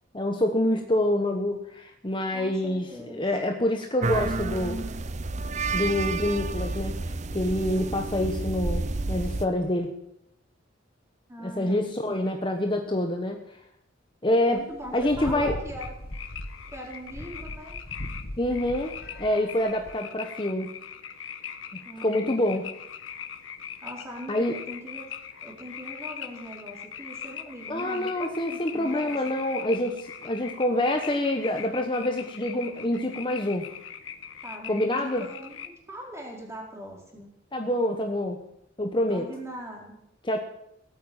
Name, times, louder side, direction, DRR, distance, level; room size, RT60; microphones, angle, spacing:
voice 1, 0.1-4.8 5.7-7.0 7.3-9.9 11.4-13.6 14.2-14.7 14.9-15.5 18.4-20.7 22.0-22.7 24.3-24.6 27.7-33.7 34.7-35.3 37.5-38.4 38.8-39.3 40.2-40.4, left 1 dB, 25° left, 4 dB, 1.1 m, -26 dB
voice 2, 2.3-3.3 11.3-12.3 14.5-16.0 16.7-17.8 21.8-22.6 23.8-25.1 25.4-29.2 34.4-37.3 39.1-40.0, right 1 dB, 15° right, -1 dB, 4.3 m, -41 dB
sound 1, 4.0-9.5, right 3 dB, 35° right, 0.6 m, -30 dB
sound 2, 14.5-19.9, left 1 dB, 50° left, 1.3 m, -39 dB
sound 3, 15.8-35.7, left 8 dB, 80° left, 1.3 m, -41 dB
17.5 x 8.8 x 8.9 m, 0.81 s
head